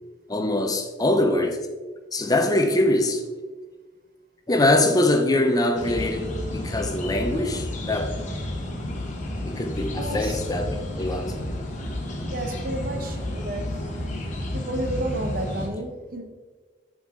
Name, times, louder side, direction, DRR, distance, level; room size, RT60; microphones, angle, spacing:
voice 1, 0.3-1.6 2.1-3.2 4.5-8.2 9.4-11.4, left 1 dB, 20° left, 0.7 m, -23 dB
sound 1, 5.7-15.7, left 1 dB, 40° left, 1.3 m, -31 dB
voice 2, 9.9-10.4 12.3-13.7 14.5-16.2, right 1 dB, 50° right, 1.1 m, -31 dB
7.0 x 6.5 x 3.7 m
head